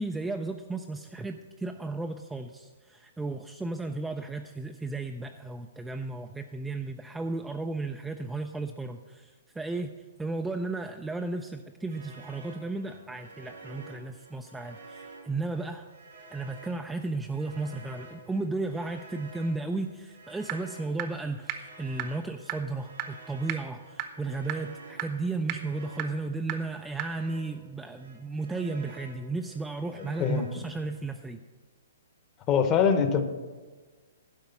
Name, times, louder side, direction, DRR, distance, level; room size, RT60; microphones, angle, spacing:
voice 1, 0.0-9.9 10.2-15.9 16.3-31.4, right 3 dB, 5° right, 5 dB, 0.4 m, -34 dB
sound 1, 11.9-27.7 27.9-31.0, right 3 dB, 85° right, 3.3 m, -51 dB
sound 2, 20.5-20.6 21.0-21.1 21.5-21.6 22.0-22.1 22.5-22.6 23.0-23.1 23.5-23.6 24.0-24.1 24.5-24.6 25.0-25.1 25.5-25.6 26.0-26.1 26.5-26.6 27.0-27.1, right 14 dB, 35° right, 0.8 m, -30 dB
voice 2, 29.9-30.5 32.5-33.2, left 7 dB, 25° left, 8 dB, 0.9 m, -24 dB
11.5 x 4.9 x 7.0 m, 1.4 s
hypercardioid pair, 150°, 0 cm